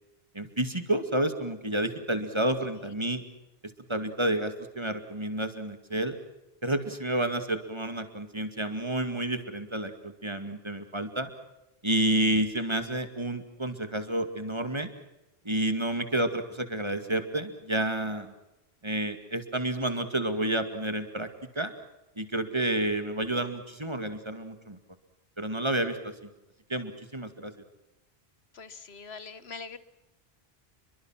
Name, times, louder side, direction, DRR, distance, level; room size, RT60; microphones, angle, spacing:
voice 1, 0.3-3.2 3.9-6.1 6.6-11.3 11.8-14.9 15.4-18.3 18.8-21.3 21.6-21.7 22.2-24.8 25.4-26.0 26.7-27.5, right 1 dB, 25° right, 8 dB, 2.3 m, -30 dB
voice 2, 28.5-29.8, left 4 dB, 80° left, 14 dB, 1.6 m, -43 dB
29.5 x 23.0 x 5.9 m, 0.97 s
omnidirectional pair, 1.0 m